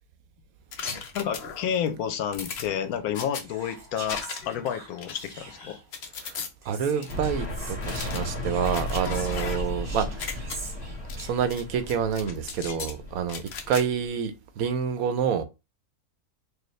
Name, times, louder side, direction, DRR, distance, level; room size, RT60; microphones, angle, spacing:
sound 1, 0.7-1.8 2.3-3.4 4.1-4.6 5.0-6.5 7.0-7.1 7.8-9.8 10.1-10.6 11.1-11.6 11.9-12.9 13.3-13.8, left 6 dB, 55° left, 0.8 m, -37 dB
voice 1, 1.1-5.8, left 8 dB, 80° left, 1.1 m, -30 dB
Whispering, 3.4-5.9 6.6-7.8 8.4-11.7, right 2 dB, 45° right, 0.9 m, -43 dB
voice 2, 6.7-10.5 11.2-15.4, right 7 dB, 75° right, 1.0 m, -28 dB
sound 2, 7.1-14.1, left 1 dB, 5° right, 0.9 m, -35 dB
4.7 x 2.3 x 3.1 m
omnidirectional pair, 1.5 m